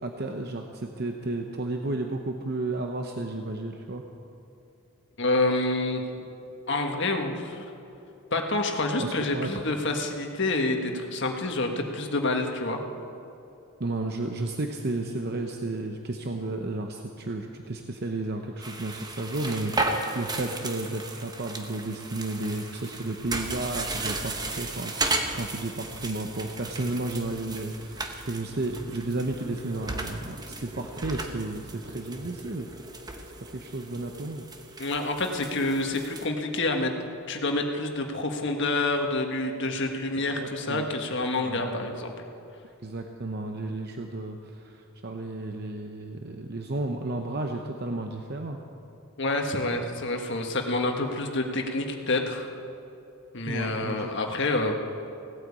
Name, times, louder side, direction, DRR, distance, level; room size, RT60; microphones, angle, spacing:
voice 1, 0.0-4.0 9.0-9.6 13.8-32.7 33.5-34.4 40.2-40.9 41.4-41.9 42.8-48.6 53.5-54.1, right 2 dB, 45° right, 4 dB, 0.8 m, -33 dB
voice 2, 5.2-6.2 6.7-7.6 8.3-12.8 34.8-37.0 37.3-42.1 49.2-52.5 53.3-54.7, left 2 dB, 55° left, 3 dB, 1.6 m, -28 dB
sound 1, 18.6-36.3, right 2 dB, 20° right, 1.0 m, -35 dB
17.0 x 9.2 x 8.4 m, 2.8 s
head